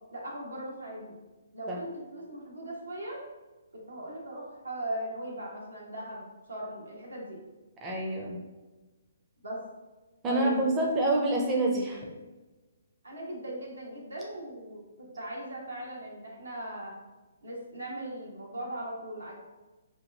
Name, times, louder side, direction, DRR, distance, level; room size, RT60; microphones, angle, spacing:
voice 1, 0.1-1.1 1.5-3.2 3.7-7.4 9.4-9.6 10.2-11.0 13.0-17.0 17.4-19.3, right 1 dB, 90° right, -3 dB, 0.9 m, -39 dB
voice 2, 7.8-8.4 10.2-12.0, right 2 dB, 20° right, -1 dB, 0.5 m, -27 dB
2.9 x 2.2 x 3.1 m, 1.2 s
hypercardioid pair, 135°, 0 cm